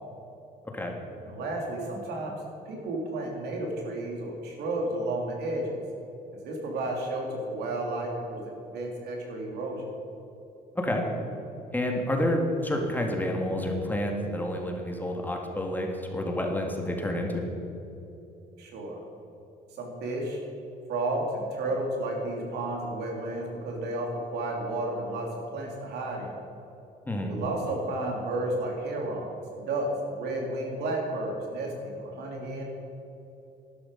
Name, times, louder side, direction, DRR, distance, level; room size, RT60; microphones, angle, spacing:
voice 1, 1.2-2.4 2.6-5.7 6.4-9.8 18.6-19.0 19.7-20.4 20.9-25.3 25.5-26.3 27.2-32.7, right 2 dB, 75° right, 0 dB, 3.1 m, -32 dB
voice 2, 11.7-17.5 27.1-27.3, left 1 dB, 10° left, 1 dB, 1.8 m, -29 dB
12.0 x 11.5 x 5.5 m, 3.0 s
cardioid pair, 110°, 17 cm